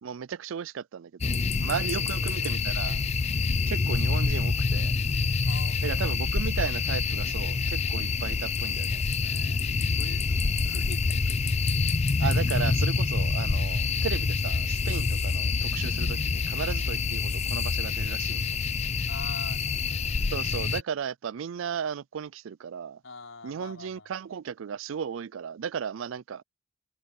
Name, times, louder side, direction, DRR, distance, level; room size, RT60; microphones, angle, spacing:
voice 1, 0.0-3.0 3.7-4.9 5.8-9.0 12.2-18.6 20.3-23.0 23.4-26.4, right 7 dB, 75° right, 0.4 m, -35 dB
sound 1, 1.2-20.8, left 4 dB, 35° left, 0.5 m, -27 dB
voice 2, 1.8-2.6 5.4-6.3 9.2-9.6 9.9-11.8 19.1-20.0 23.0-24.2, left 3 dB, 80° left, 5.6 m, -45 dB
head